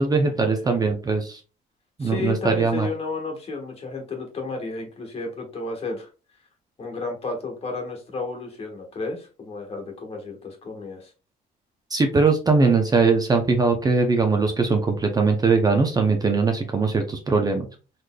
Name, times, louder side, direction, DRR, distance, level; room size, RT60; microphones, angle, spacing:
voice 1, 0.0-1.4 2.0-2.9 11.9-17.7, right 4 dB, 25° right, 4 dB, 0.5 m, -21 dB
voice 2, 2.0-6.1 6.8-11.1, left 3 dB, 35° left, 2 dB, 1.2 m, -32 dB
4.0 x 3.3 x 2.2 m, 0.33 s
cardioid pair, 125°, 17 cm